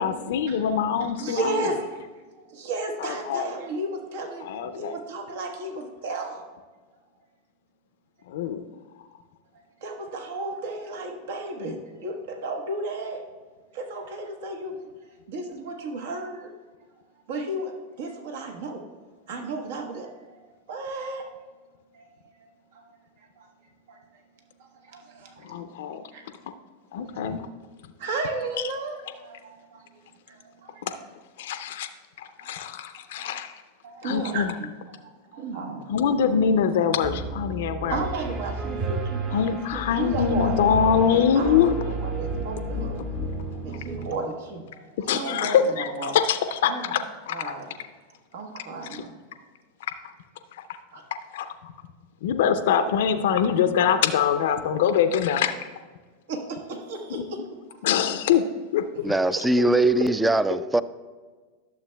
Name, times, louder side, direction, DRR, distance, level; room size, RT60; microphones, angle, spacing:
voice 1, 0.0-1.7 3.0-3.5 4.4-5.0 8.3-8.7 25.4-26.0 26.4-26.5 26.9-27.5 30.8-30.9 31.4-31.9 32.2-33.6 34.0-34.5 35.9-38.0 39.3-41.7 45.0-47.5 48.9-49.0 50.0-50.1 50.5-50.6 51.3-51.7 52.2-55.5 57.1-57.2 57.8-58.4 58.7-59.1 59.6-59.7, left 8 dB, 70° left, 9 dB, 0.4 m, -24 dB
voice 2, 1.0-1.8 2.3-4.5 4.8-6.4 9.8-13.2 13.7-14.9 15.3-16.5 17.3-18.8 19.3-20.4 20.7-21.3 21.9-22.1 22.4-22.9 23.2-23.5 23.9-24.0 24.8-25.7 26.1-26.2 28.0-29.8 30.3-31.0 32.4-32.5 33.2-33.3 33.8-34.7 35.0-35.8 37.9-39.2 39.7-40.6 41.1-43.0 43.6-46.2 46.6-46.9 47.3-47.7 48.3-49.1 50.9-51.0 56.3-57.4 58.0-58.1 60.0-60.1, right 2 dB, 70° right, 3 dB, 1.1 m, -34 dB
Piano, 37.0-44.1, right 2 dB, 40° right, 1.2 m, -31 dB
voice 3, 59.0-60.8, right 2 dB, 10° right, 15 dB, 0.3 m, -21 dB
11.5 x 6.8 x 2.2 m, 1.4 s
hypercardioid pair, 100°, 0 cm